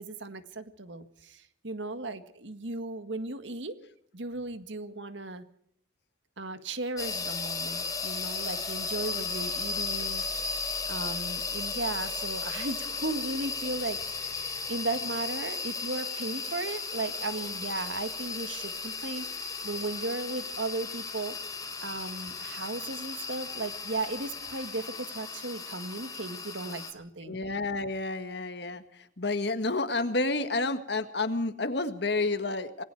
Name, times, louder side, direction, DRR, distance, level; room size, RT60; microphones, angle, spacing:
voice 1, 0.0-3.7 4.1-5.4 6.4-10.2 10.9-21.3 21.8-27.4, right 2 dB, 75° right, 10 dB, 1.8 m, -36 dB
sound 1, 7.0-26.9, left 4 dB, 20° left, 3.1 m, -35 dB
voice 2, 27.2-28.8 29.2-32.8, left 2 dB, 60° left, 10 dB, 1.7 m, -30 dB
27.5 x 19.5 x 4.8 m, 0.66 s
head